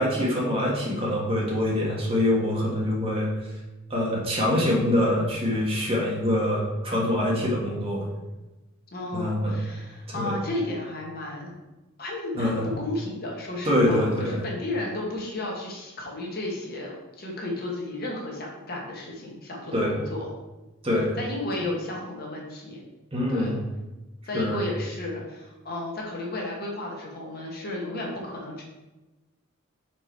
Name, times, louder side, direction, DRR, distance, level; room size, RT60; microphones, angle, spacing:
voice 1, 0.0-3.3 3.9-8.1 9.1-9.6 10.1-10.4 12.3-12.7 13.6-14.4 19.7-20.0 20.8-21.1 23.1-23.6 24.3-24.6, left 1 dB, 30° right, -4 dB, 1.4 m, -24 dB
voice 2, 8.9-11.5 12.0-20.3 21.2-22.8 23.3-23.5 24.2-28.6, left 2 dB, 45° left, -2 dB, 1.3 m, -33 dB
4.9 x 4.6 x 4.5 m, 1.1 s
head